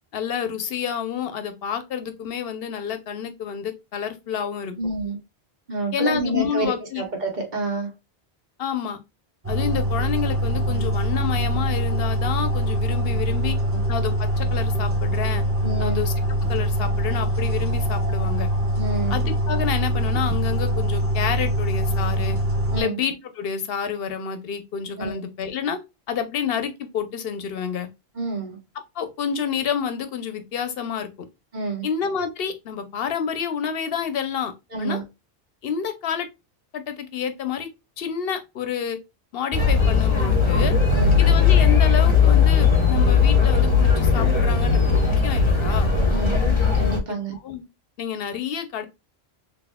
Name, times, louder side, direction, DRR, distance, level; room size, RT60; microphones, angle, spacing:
voice 1, 0.1-4.7 5.9-7.0 8.6-9.0 9.5-13.6 13.9-15.4 15.8-16.1 16.4-18.5 19.1-22.4 22.7-25.8 26.1-27.9 29.0-31.3 31.8-34.5 34.8-35.0 35.6-36.3 36.7-37.7 38.0-39.0 39.3-40.7 41.2-45.9 47.1-47.6 48.0-48.8, left 7 dB, 70° left, 0.9 m, -29 dB
voice 2, 4.8-5.2 5.7-7.9 15.6-16.0 18.7-19.2 22.7-23.0 25.0-25.2 28.1-28.6 31.5-31.9 34.7-35.0 40.9-41.2 46.0-46.4 46.7-47.4, right 3 dB, 45° right, 1.2 m, -28 dB
sound 1, 9.4-22.8, equal, 15° right, 0.6 m, -23 dB
sound 2, 39.5-47.0, left 5 dB, 30° left, 0.8 m, -18 dB
4.1 x 3.1 x 2.2 m
omnidirectional pair, 1.1 m